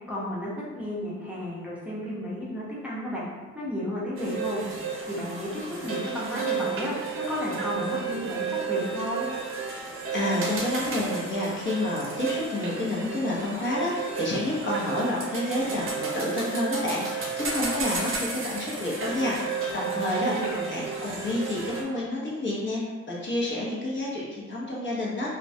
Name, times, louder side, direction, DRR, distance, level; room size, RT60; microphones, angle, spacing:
voice 1, 0.1-3.3 3.5-4.6 5.1-5.5 5.8-9.3 19.9-20.7, equal, 5° right, -8 dB, 0.6 m, -33 dB
sound 1, 4.2-21.8, right 5 dB, 45° right, 0.6 m, -32 dB
voice 2, 10.1-15.9 16.1-20.3 20.7-22.8 23.1-25.4, left 1 dB, 40° left, -5 dB, 0.6 m, -29 dB
2.2 x 2.1 x 2.6 m, 1.3 s
cardioid pair, 90°, 30 cm